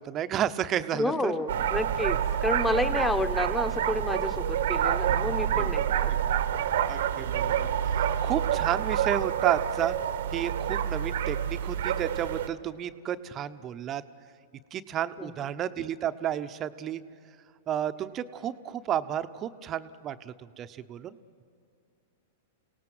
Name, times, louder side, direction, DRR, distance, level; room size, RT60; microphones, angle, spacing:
voice 1, 0.0-1.3 2.9-3.0 6.9-10.0 10.3-14.0 14.7-17.0 17.7-21.2, right 10 dB, 30° right, 11 dB, 0.8 m, -32 dB
voice 2, 0.9-6.1 15.2-15.3, left 1 dB, 10° left, 10 dB, 1.3 m, -30 dB
sound 1, 1.5-12.5, right 9 dB, 75° right, 1.1 m, -28 dB
28.5 x 18.0 x 7.8 m, 2.5 s
hypercardioid pair, 120°, 0 cm